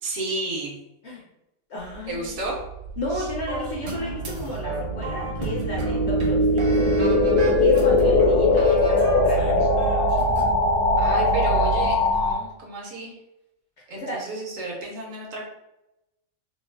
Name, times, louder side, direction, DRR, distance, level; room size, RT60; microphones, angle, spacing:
voice 1, 0.0-0.8 2.1-2.6 3.1-3.3 7.8-8.2 11.0-13.1 13.9-15.5, right 2 dB, 65° right, -2 dB, 1.0 m, -32 dB
voice 2, 1.7-2.4 3.0-7.2 7.6-9.5 13.9-14.2, left 2 dB, 65° left, -3 dB, 0.7 m, -32 dB
sound 1, 3.0-12.3, left 2 dB, 85° left, 1.2 m, -21 dB
sound 2, 3.5-10.4, right 1 dB, 50° right, 0.7 m, -34 dB
3.1 x 2.3 x 2.3 m, 0.90 s
omnidirectional pair, 1.6 m